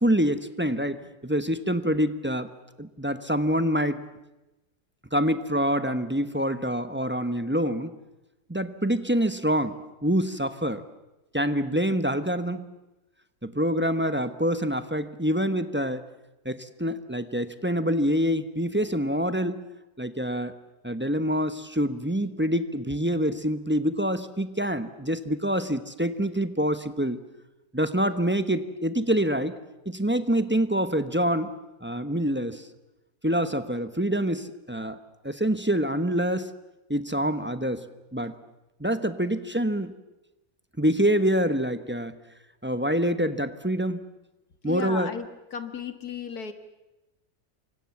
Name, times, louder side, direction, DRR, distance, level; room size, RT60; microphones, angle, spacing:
voice 1, 0.0-2.5 2.8-4.0 5.1-7.9 8.5-9.7 10.0-10.8 11.3-12.7 13.4-16.0 16.4-19.6 20.0-20.5 20.8-27.2 27.7-29.5 29.8-31.5 31.8-32.7 33.2-35.0 35.2-36.5 36.9-37.8 38.1-38.3 38.8-39.9 40.8-42.2 42.6-44.0 44.6-45.1, equal, 10° right, 10 dB, 0.9 m, -26 dB
voice 2, 44.6-45.3 45.5-46.5, left 6 dB, 70° left, 9 dB, 2.1 m, -34 dB
28.5 x 25.0 x 7.2 m, 1.0 s
omnidirectional pair, 1.7 m